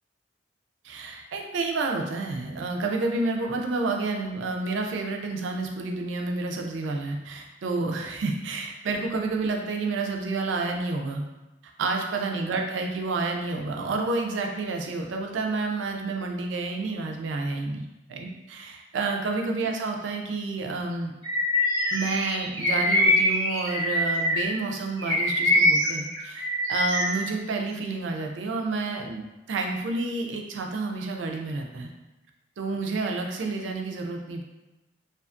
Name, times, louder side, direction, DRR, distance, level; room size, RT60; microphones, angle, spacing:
voice 1, 0.8-11.2 11.8-21.1 21.9-31.9 32.6-34.4, right 3 dB, 90° right, 2 dB, 0.4 m, -29 dB
Bird vocalization bird call bird song, 21.2-24.5 25.0-27.2, left 1 dB, 25° left, 1.4 m, -24 dB
2.7 x 2.2 x 2.4 m, 1.0 s
head